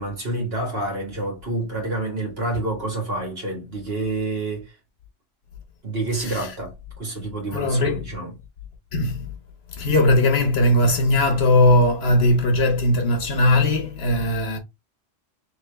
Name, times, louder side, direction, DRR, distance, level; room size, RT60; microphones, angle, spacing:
voice 1, 0.0-4.7 5.8-8.3, right 2 dB, 55° right, 2.0 m, -28 dB
voice 2, 6.2-6.5 7.5-8.0 8.9-9.3 9.7-14.6, left 1 dB, 60° left, 1.0 m, -19 dB
3.2 x 3.0 x 3.1 m
omnidirectional pair, 1.2 m